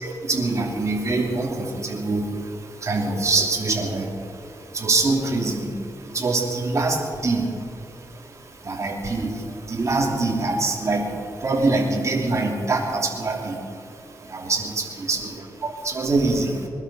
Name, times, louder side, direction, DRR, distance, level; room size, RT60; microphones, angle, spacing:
voice 1, 0.0-2.2 2.8-4.1 4.7-5.7 6.1-7.0 7.2-7.4 8.7-9.3 9.7-11.1 11.4-13.5 14.3-14.6 15.1-15.2 15.6-16.5, right 3 dB, 45° right, 0 dB, 3.0 m, -23 dB
21.0 x 12.0 x 5.6 m, 2.4 s
cardioid pair, 90°, 7 cm